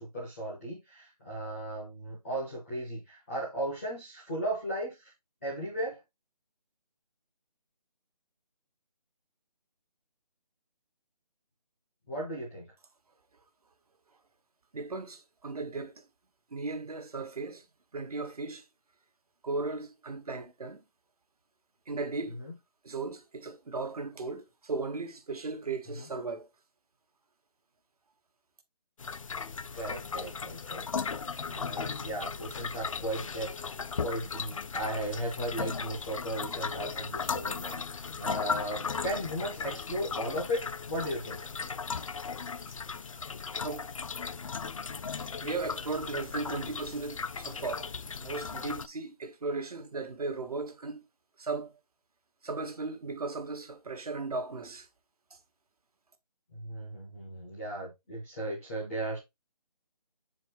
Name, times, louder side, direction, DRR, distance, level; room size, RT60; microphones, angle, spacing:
voice 1, 0.0-5.1 5.4-6.0 12.1-12.7 22.4-22.5 26.0-26.1 29.7-33.5 34.0-41.5 56.5-59.2, right 1 dB, ahead, 0.5 m, -36 dB
voice 2, 14.7-16.0 16.5-17.7 17.9-18.6 19.4-20.8 21.9-22.4 22.8-26.5 43.6-43.9 45.4-47.9 48.2-51.0 51.4-51.7 52.4-54.9 55.3-55.4, right 3 dB, 60° right, 1.7 m, -36 dB
sound 1, 29.0-48.9, left 5 dB, 50° left, 0.4 m, -37 dB
6.8 x 4.9 x 3.2 m
figure-of-eight pair, 170°, 21 cm